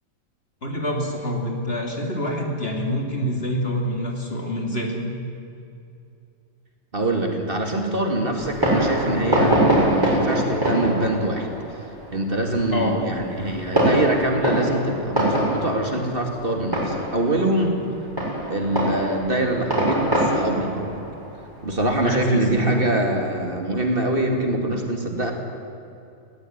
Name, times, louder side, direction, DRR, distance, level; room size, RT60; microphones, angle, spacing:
voice 1, 0.6-5.1 12.7-13.0 21.9-22.7, equal, 45° left, 1 dB, 3.4 m, -26 dB
voice 2, 6.9-11.5 12.1-17.8 18.5-21.0 21.6-25.3, right 1 dB, 40° right, 2 dB, 2.7 m, -24 dB
Fireworks, 8.4-22.5, right 1 dB, 15° right, 6.6 m, -24 dB
20.0 x 17.5 x 9.6 m, 2.6 s
omnidirectional pair, 1.4 m